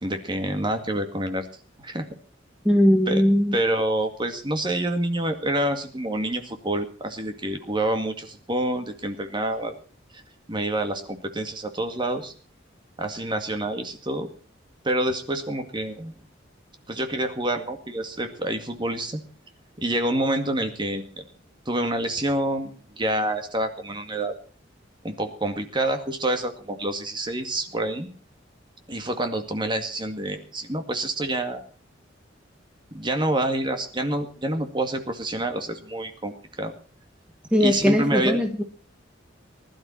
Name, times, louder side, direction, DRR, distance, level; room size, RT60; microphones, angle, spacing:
voice 1, 0.0-1.5 1.8-2.0 3.1-3.2 3.5-9.7 10.1-10.2 10.5-12.3 13.0-14.3 14.8-16.1 16.9-19.2 19.8-21.2 21.7-24.3 25.0-28.1 28.9-31.6 32.9-36.7 37.6-38.4, right 1 dB, 25° right, 6 dB, 2.1 m, -27 dB
voice 2, 2.7-3.6 37.5-38.6, equal, 5° right, 4 dB, 1.6 m, -19 dB
20.5 x 12.0 x 4.4 m, 0.40 s
head